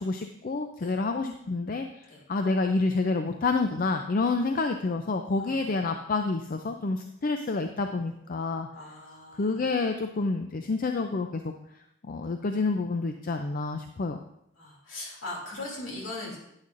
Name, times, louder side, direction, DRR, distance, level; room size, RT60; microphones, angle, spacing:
voice 1, 0.0-8.7 9.3-11.5 12.0-14.2, left 3 dB, 40° left, 6 dB, 0.4 m, -28 dB
voice 2, 5.4-5.8 8.7-9.6 14.6-16.4, left 2 dB, 65° left, -2 dB, 2.7 m, -40 dB
10.5 x 9.7 x 2.6 m, 0.77 s
head